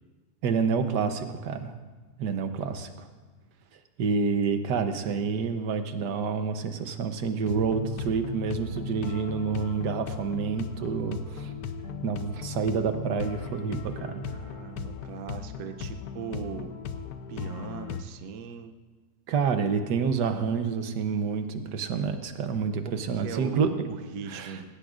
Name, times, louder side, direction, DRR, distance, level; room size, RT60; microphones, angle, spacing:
voice 1, 0.4-1.7 2.2-3.1 4.0-11.5 12.0-14.3 19.3-23.7 24.3-24.6, right 6 dB, 85° right, 8 dB, 1.5 m, -28 dB
sound 1, 7.5-18.0, left 6 dB, 70° left, 1.2 m, -37 dB
voice 2, 14.2-16.7 17.3-18.7 22.8-24.7, right 6 dB, 70° right, 7 dB, 1.2 m, -39 dB
19.0 x 18.0 x 2.5 m, 1.3 s
omnidirectional pair, 1.8 m